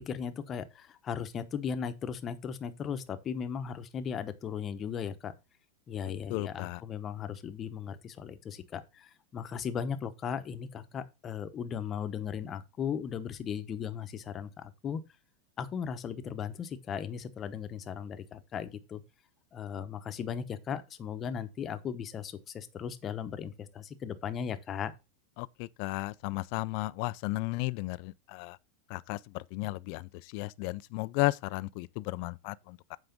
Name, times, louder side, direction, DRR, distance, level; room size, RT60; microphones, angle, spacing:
voice 1, 0.1-5.3 5.9-15.0 15.6-19.0 19.5-24.9, left 7 dB, 25° left, 0.9 m, -37 dB
voice 2, 6.3-6.8 25.4-28.6 28.9-33.0, left 21 dB, 50° left, 0.4 m, -34 dB
8.1 x 4.9 x 5.1 m
supercardioid pair, 150°, 0 cm